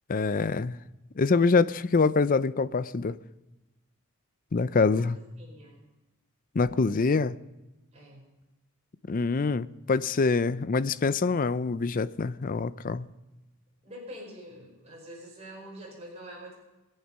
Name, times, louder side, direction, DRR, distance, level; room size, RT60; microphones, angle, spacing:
voice 1, 0.1-0.8 1.2-3.2 4.5-5.2 6.5-7.4 9.1-13.1, left 4 dB, 40° left, 0.5 m, -25 dB
voice 2, 4.9-5.9 7.9-8.2 13.8-16.5, equal, 30° right, 5.1 m, -45 dB
22.5 x 8.9 x 5.5 m
head